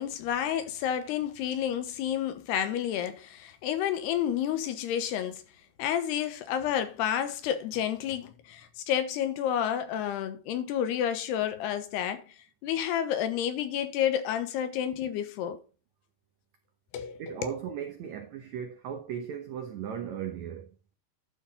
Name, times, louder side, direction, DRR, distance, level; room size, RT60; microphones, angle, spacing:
voice 1, 0.0-5.4 5.8-12.2 12.6-15.6 16.9-17.5, left 10 dB, 80° left, 3.1 m, -30 dB
voice 2, 17.2-20.7, right 8 dB, 80° right, 1.6 m, -37 dB
12.0 x 5.9 x 4.1 m
omnidirectional pair, 4.7 m